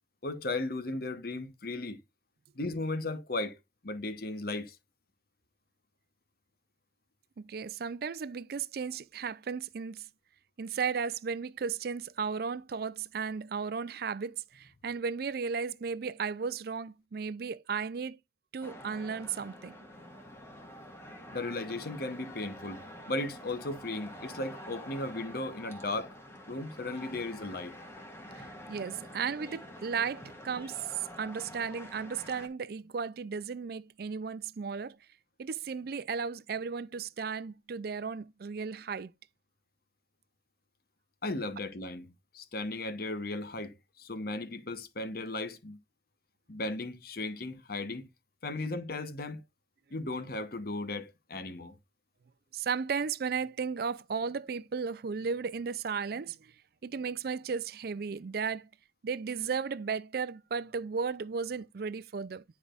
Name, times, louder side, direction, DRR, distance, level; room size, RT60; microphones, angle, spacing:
voice 1, 0.2-2.0 2.5-3.6 3.8-4.8 21.3-26.1 26.5-27.8 41.2-45.8 46.5-48.1 48.4-49.4 49.9-51.8, left 2 dB, 50° left, 1.0 m, -36 dB
voice 2, 7.4-10.1 10.6-18.2 18.5-19.8 28.3-35.0 35.4-39.1 52.5-56.5 56.8-58.7 59.0-62.4, right 5 dB, 55° right, 0.4 m, -35 dB
sound 1, 18.6-32.5, equal, 15° left, 1.5 m, -47 dB
10.0 x 4.8 x 2.4 m
head